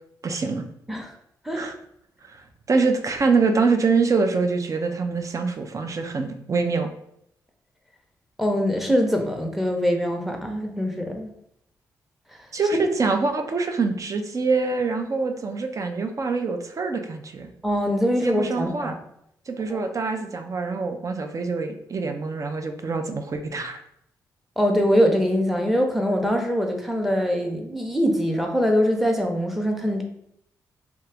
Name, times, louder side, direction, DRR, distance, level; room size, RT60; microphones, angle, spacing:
voice 1, 0.2-0.6 1.6-1.7 2.3-6.9 12.5-17.5 18.2-19.0 19.5-23.8, right 4 dB, 45° right, 6 dB, 0.5 m, -25 dB
voice 2, 8.4-11.3 17.6-18.9 24.6-30.0, equal, ahead, 3 dB, 0.7 m, -23 dB
2.9 x 2.3 x 3.4 m, 0.75 s
supercardioid pair, 50°, 8 cm